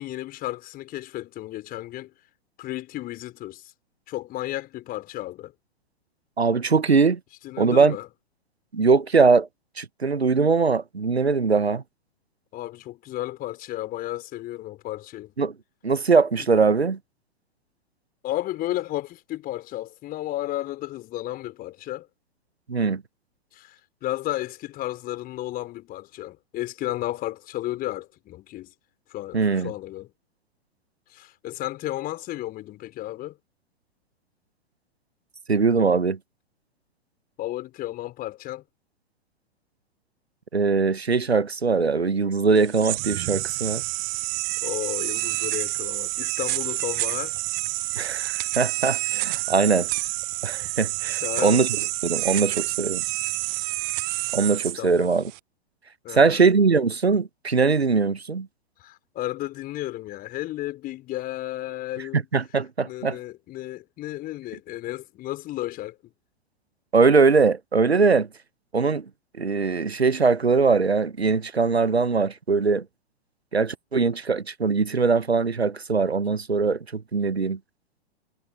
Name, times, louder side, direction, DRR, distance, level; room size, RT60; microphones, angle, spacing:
voice 1, 0.0-2.1 2.6-3.7 4.1-5.5 7.4-8.1 12.5-15.3 18.2-22.1 23.5-28.7 29.1-30.1 31.1-33.4 37.4-38.6 44.6-47.3 51.2-51.7 54.8-55.1 56.0-56.4 58.8-62.3 62.8-66.1, left 15 dB, 30° left, 5.4 m, -33 dB
voice 2, 6.4-7.2 7.6-8.0 8.7-9.5 9.8-11.8 15.4-15.5 15.8-17.0 22.7-23.0 29.3-29.7 35.5-36.2 40.5-43.8 48.0-49.9 50.4-51.7 52.0-53.0 54.3-55.3 56.1-58.5 62.1-63.2 66.9-68.3 68.7-69.1 69.4-72.8 73.5-77.6, right 4 dB, 85° right, 1.1 m, -21 dB
sound 1, 42.6-55.4, right 31 dB, 30° right, 0.8 m, -28 dB
figure-of-eight pair, 105°, 31 cm